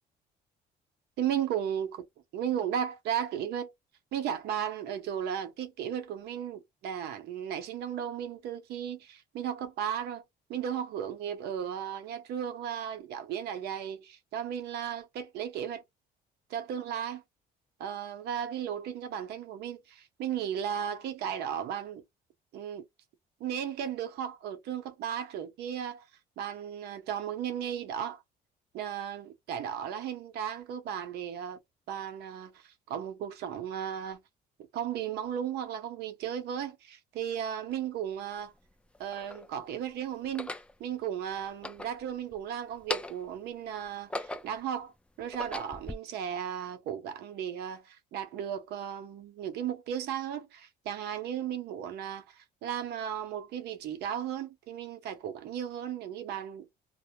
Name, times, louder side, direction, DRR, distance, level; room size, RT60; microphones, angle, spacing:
voice 1, 1.2-2.0 2.3-3.7 4.1-10.2 10.5-15.8 16.5-17.2 17.8-22.0 22.5-22.8 23.4-26.0 26.4-28.2 28.7-31.6 31.9-34.2 34.7-38.5 39.0-40.5 40.8-56.7, right 9 dB, 75° right, 0.7 m, -35 dB
sound 1, 37.7-37.8 38.6-39.5 40.2-40.7 41.5-42.4 42.7-43.3 43.8-44.7 45.2-46.0, left 2 dB, 5° left, 0.3 m, -39 dB
2.1 x 2.0 x 2.8 m
cardioid pair, 110°, 17 cm